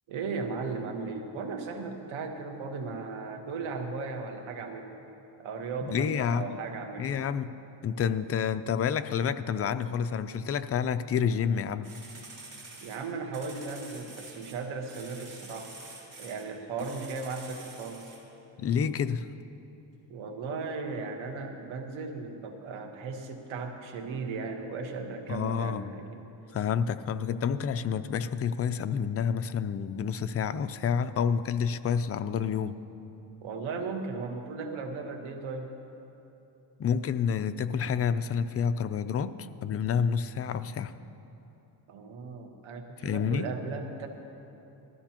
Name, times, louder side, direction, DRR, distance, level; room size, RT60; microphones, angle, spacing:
voice 1, 0.1-4.9 5.4-7.1 12.8-15.8 16.2-18.1 20.1-26.2 33.4-35.7 41.9-44.1, right 4 dB, 90° right, 4 dB, 1.4 m, -36 dB
voice 2, 5.8-6.6 7.0-7.5 7.8-11.9 18.6-19.3 25.3-25.9 26.5-32.8 36.8-40.9 43.0-43.5, left 7 dB, 35° left, 11 dB, 0.4 m, -29 dB
sound 1, 11.8-14.6 14.9-16.5 16.8-18.2, right 3 dB, 40° right, 3.6 m, -47 dB
19.0 x 13.5 x 2.9 m, 2.9 s
cardioid pair, 110°, 46 cm